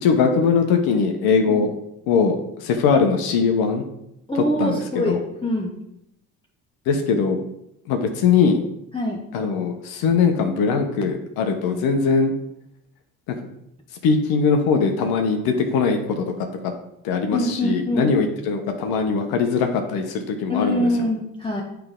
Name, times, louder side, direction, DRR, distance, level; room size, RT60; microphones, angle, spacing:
voice 1, 0.0-1.7 2.1-3.8 4.3-5.2 6.9-7.4 7.9-8.6 9.3-12.3 13.3-13.4 14.0-16.7 17.0-20.9, left 5 dB, 75° left, 5 dB, 0.9 m, -21 dB
voice 2, 4.3-5.8 8.9-9.2 11.7-11.8 17.3-18.1 20.5-21.6, left 1 dB, 15° left, -2 dB, 1.0 m, -24 dB
8.6 x 3.4 x 3.7 m, 0.81 s
supercardioid pair, 80°, 38 cm